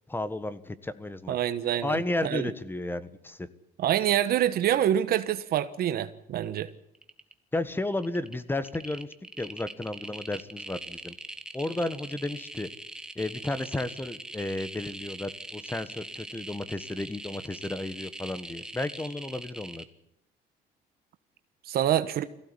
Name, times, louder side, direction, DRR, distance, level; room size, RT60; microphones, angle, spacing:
voice 1, 0.1-1.4 1.8-3.5 7.5-9.1 9.4-11.1 11.5-12.7 13.1-19.8, left 2 dB, 10° left, 14 dB, 1.4 m, -33 dB
voice 2, 1.3-2.5 3.8-6.7 21.7-22.2, right 11 dB, 65° right, 11 dB, 1.2 m, -26 dB
sound 1, 6.4-6.7 6.9-7.6 7.9-19.8, right 1 dB, 5° right, 1.6 m, -42 dB
22.5 x 15.5 x 9.8 m, 0.83 s
cardioid pair, 110°, 17 cm